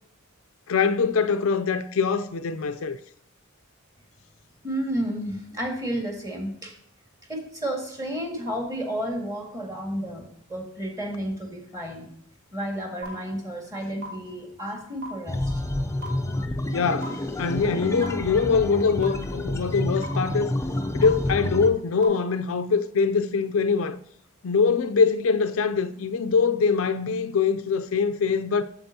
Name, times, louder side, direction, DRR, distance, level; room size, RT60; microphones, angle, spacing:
voice 1, 0.7-3.0 16.7-20.5 20.9-24.0 24.4-28.6, left 5 dB, 65° left, 0.4 m, -23 dB
voice 2, 4.6-6.7 7.3-12.1 12.5-15.4, equal, 15° right, 1.7 m, -31 dB
sound 1, 13.0-13.1 14.0-14.1 15.0-15.1 16.0-16.1 17.0-17.1 18.0-18.1 19.0-19.1 20.0-20.1 21.0-21.1 22.0-22.1, right 1 dB, 35° right, 1.9 m, -35 dB
sound 2, 15.3-21.7, left 1 dB, 15° left, 0.5 m, -29 dB
8.8 x 7.5 x 2.8 m
head